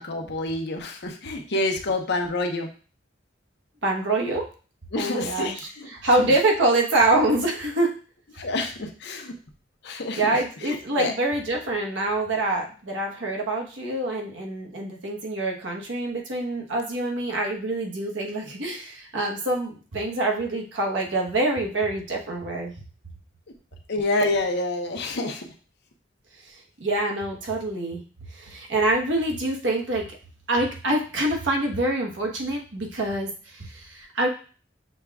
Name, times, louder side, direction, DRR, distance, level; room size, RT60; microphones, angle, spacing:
voice 1, 0.0-2.7 4.9-5.9 8.4-9.3 9.8-10.2 10.6-11.1 23.9-25.5, left 2 dB, 60° left, 4 dB, 0.7 m, -27 dB
voice 2, 3.8-4.5 4.9-5.7 6.0-7.9 10.2-22.7 26.5-28.0 28.3-30.2 30.5-34.3, right 2 dB, 75° right, 0 dB, 1.1 m, -25 dB
6.4 x 2.3 x 3.4 m, 0.38 s
head